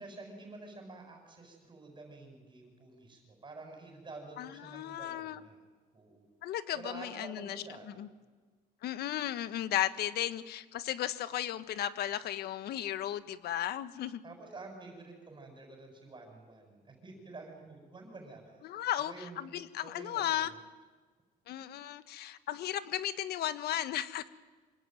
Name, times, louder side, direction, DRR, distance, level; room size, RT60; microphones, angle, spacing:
voice 1, 0.0-5.6 5.9-6.3 6.7-8.0 14.2-18.7 19.0-19.4 19.8-20.6, right 3 dB, 30° right, 3 dB, 7.7 m, -49 dB
voice 2, 4.4-5.4 6.4-7.6 8.0-8.1 8.8-14.2 18.6-20.5 21.5-24.3, left 12 dB, 70° left, 13 dB, 1.5 m, -35 dB
27.0 x 23.0 x 9.4 m, 1.4 s
cardioid pair, 110°, 17 cm